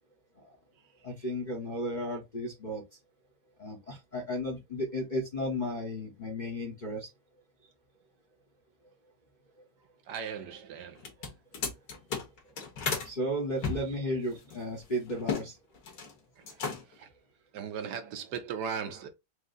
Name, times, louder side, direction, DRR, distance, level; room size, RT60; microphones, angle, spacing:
voice 1, 1.0-2.8 3.6-7.1 8.8-8.9 13.0-15.6, equal, 35° left, 0.8 m, -34 dB
voice 2, 10.1-11.0 16.4-16.5 16.9-17.1 17.5-19.1, right 7 dB, 70° right, 1.3 m, -37 dB
sound 1, 11.0-13.1 13.6-15.5 15.7-16.1 16.4-17.0, left 5 dB, 70° left, 1.8 m, -35 dB
4.7 x 2.0 x 3.8 m
omnidirectional pair, 1.9 m